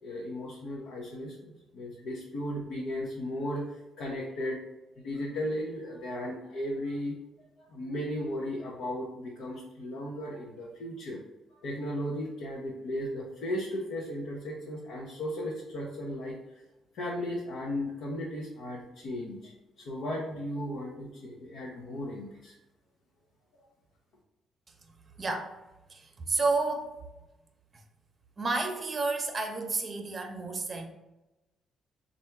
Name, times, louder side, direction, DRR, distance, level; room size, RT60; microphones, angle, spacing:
voice 1, 0.0-4.6 5.0-7.1 7.6-11.2 11.6-16.4 16.9-19.5 19.8-22.6, left 1 dB, 80° left, -3 dB, 0.7 m, -36 dB
voice 2, 25.1-25.5 25.9-26.9 27.7-27.8 28.4-30.9, right 3 dB, 35° right, 4 dB, 0.7 m, -31 dB
3.4 x 2.6 x 4.5 m, 1.0 s
cardioid pair, 90°, 0 cm